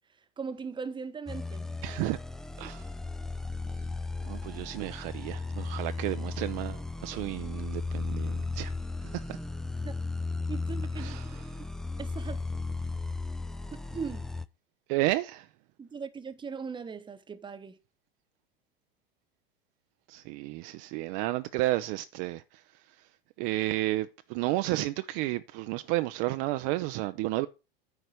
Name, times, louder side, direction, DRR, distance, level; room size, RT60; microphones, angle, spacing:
voice 1, 0.4-1.7 2.6-2.7 9.8-9.9 10.5-11.6 12.0-12.4 13.7-14.3 15.8-17.8, right 5 dB, 15° right, 1.0 m, -39 dB
sound 1, 1.3-14.4, left 3 dB, ahead, 0.4 m, -35 dB
voice 2, 1.8-2.2 2.6-2.9 4.2-8.7 9.0-9.4 11.0-11.7 14.9-15.5 20.1-27.5, right 18 dB, 45° right, 0.6 m, -32 dB
9.5 x 4.2 x 6.4 m
figure-of-eight pair, 85°, 29 cm